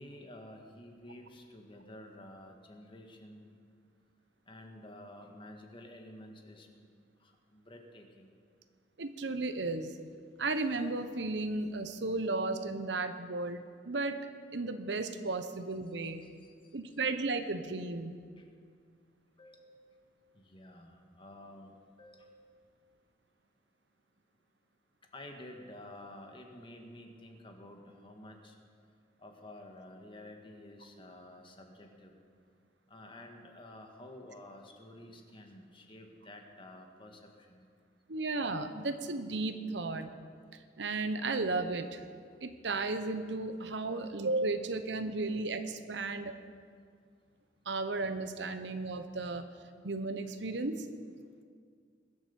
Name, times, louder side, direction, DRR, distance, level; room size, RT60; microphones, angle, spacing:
voice 1, 0.0-3.5 4.5-6.9 7.2-8.3 16.2-16.3 19.4-19.8 20.3-22.4 25.1-28.5 29.2-32.1 32.9-37.7 43.9-44.3, left 1 dB, 30° left, 3 dB, 1.7 m, -51 dB
voice 2, 9.0-9.9 10.4-14.2 14.5-16.2 16.7-18.1 38.1-40.1 40.5-42.0 42.4-46.4 47.7-49.4 49.8-50.8, right 3 dB, 75° right, 9 dB, 0.9 m, -34 dB
21.5 x 7.9 x 7.1 m, 2.1 s
head